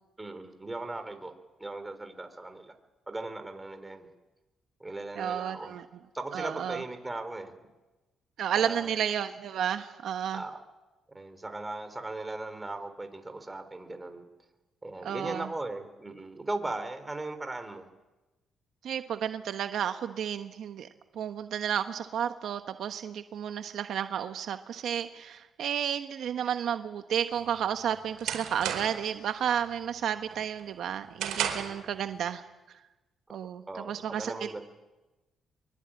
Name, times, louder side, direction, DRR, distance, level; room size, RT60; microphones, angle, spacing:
voice 1, 0.2-1.3 1.6-2.7 3.1-4.1 4.8-5.7 6.1-7.5 8.5-8.9 10.3-10.6 11.1-14.2 14.8-17.9 33.7-34.6, right 2 dB, 15° right, 8 dB, 3.9 m, -38 dB
voice 2, 5.1-5.9 6.3-6.8 8.4-10.4 15.0-15.5 18.8-20.9 21.1-32.4 33.3-34.5, right 9 dB, 70° right, 7 dB, 1.2 m, -32 dB
sound 1, 27.4-29.1 29.5-29.9 30.3-31.8, right 9 dB, 85° right, 4.4 m, -34 dB
23.5 x 22.5 x 8.9 m, 1.1 s
cardioid pair, 90°, 0 cm